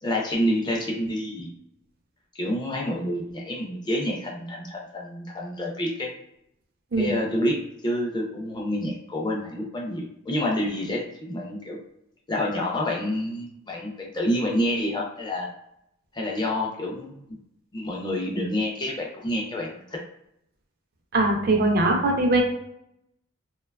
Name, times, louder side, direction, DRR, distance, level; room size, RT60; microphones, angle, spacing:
voice 1, 0.0-1.5 2.3-6.1 7.0-11.8 12.3-15.5 16.1-17.2 17.7-20.0, left 1 dB, 20° left, -1 dB, 0.4 m, -28 dB
voice 2, 21.1-22.4, right 2 dB, 45° right, 2 dB, 0.4 m, -21 dB
2.8 x 2.2 x 2.2 m, 0.78 s
head